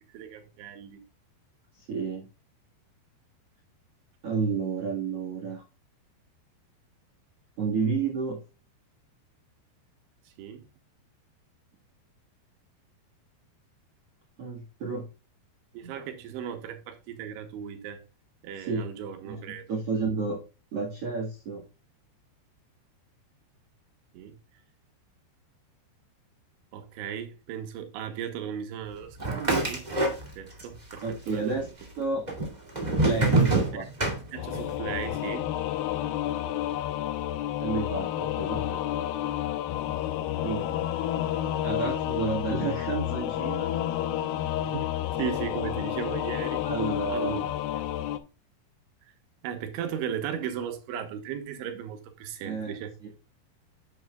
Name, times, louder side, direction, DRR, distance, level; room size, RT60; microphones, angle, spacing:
voice 1, 0.1-1.0 10.4-10.6 15.7-18.0 18.4-19.8 24.1-24.4 26.7-29.8 30.1-31.7 33.7-33.9 34.3-35.5 44.6-44.9 45.2-46.6 47.1-47.5 47.8-47.9 49.4-52.9, right 9 dB, 90° right, 3.7 m, -36 dB
voice 2, 1.9-2.3 4.2-5.6 7.6-8.4 14.4-15.1 15.8-15.9 18.6-18.9 19.2-20.4 20.7-21.6 31.0-31.7 32.0-32.2 33.0-33.9 37.6-38.8 40.4-40.8 41.6-43.7 46.6-47.4 52.4-52.8 53.0-53.2, right 4 dB, 55° right, 1.6 m, -31 dB
sound 1, 29.2-30.6 30.9-31.6 32.3-34.7, right 2 dB, 25° right, 0.8 m, -25 dB
Singing / Musical instrument, 34.3-48.2, left 12 dB, 85° left, 2.1 m, -30 dB
9.4 x 9.1 x 2.3 m
omnidirectional pair, 5.3 m